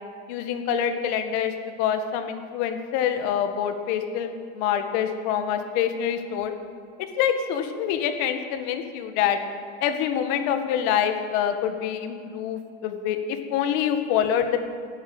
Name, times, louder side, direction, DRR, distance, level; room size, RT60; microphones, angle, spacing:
voice 1, 0.3-1.5 1.8-6.5 7.2-9.4 9.8-14.6, left 9 dB, 60° left, 7 dB, 1.8 m, -26 dB
16.0 x 10.0 x 7.9 m, 2.3 s
supercardioid pair, 135°, 32 cm